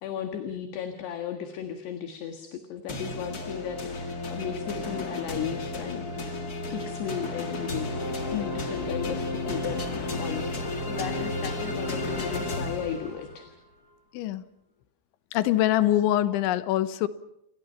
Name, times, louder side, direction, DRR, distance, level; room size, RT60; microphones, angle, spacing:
voice 1, 0.0-6.1 6.7-13.5, left 8 dB, 70° left, 6 dB, 3.6 m, -35 dB
sound 1, 2.9-13.5, left 2 dB, 35° left, 1.6 m, -32 dB
Car passing by / Traffic noise roadway noise / Engine, 4.7-12.0, right 1 dB, 70° right, 8.0 m, -49 dB
voice 2, 15.3-17.1, left 13 dB, 85° left, 13 dB, 3.5 m, -24 dB
30.0 x 25.0 x 5.6 m, 0.80 s
omnidirectional pair, 5.3 m